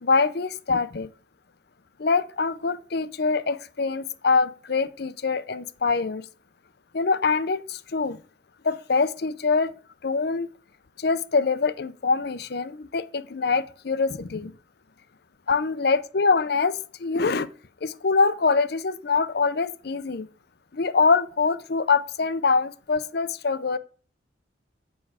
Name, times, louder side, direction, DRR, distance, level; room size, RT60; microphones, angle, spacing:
voice 1, 0.0-1.1 2.0-6.2 6.9-8.2 8.6-9.7 10.0-10.5 11.0-14.5 15.5-17.5 17.8-20.3 20.7-23.8, left 4 dB, 50° left, 0.5 m, -24 dB
8.6 x 6.1 x 4.8 m
head